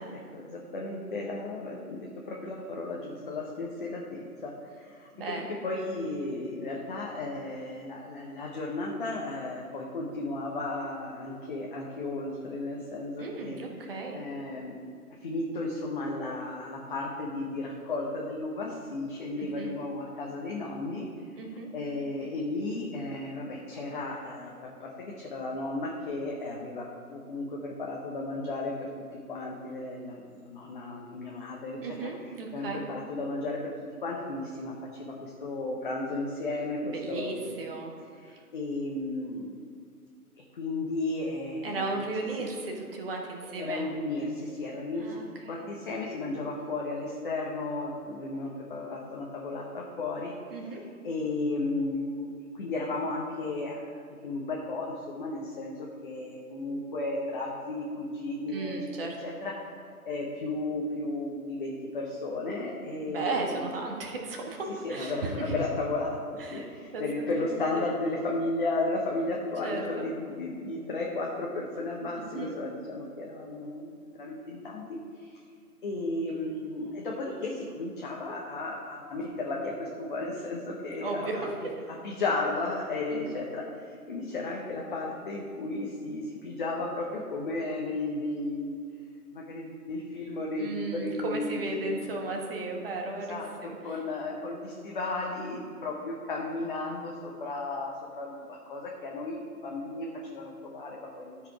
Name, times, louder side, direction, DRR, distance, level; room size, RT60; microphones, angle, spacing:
voice 1, 0.0-2.0 2.2-5.1 5.6-21.3 21.7-24.5 24.8-31.8 32.5-33.7 34.0-37.8 38.2-39.6 40.5-41.9 43.5-45.2 45.5-50.5 51.0-58.8 59.2-59.5 60.0-63.7 64.8-66.2 66.5-75.4 75.8-81.5 82.0-88.8 89.3-92.0 92.2-92.3 93.1-93.5 93.8-101.4, left 2 dB, 35° left, -2 dB, 1.0 m, -34 dB
voice 2, 5.1-5.5 13.2-14.2 19.4-19.7 21.4-21.7 31.8-32.8 36.8-38.0 38.3-38.4 41.6-43.9 45.0-45.6 50.5-50.8 58.5-59.2 63.1-65.6 66.4-66.6 66.9-67.9 69.6-70.1 72.1-72.6 81.0-81.5 83.1-83.4 90.6-94.0, right 3 dB, 35° right, 1 dB, 1.5 m, -35 dB
12.5 x 5.1 x 4.6 m, 2.2 s
figure-of-eight pair, 145°, 46 cm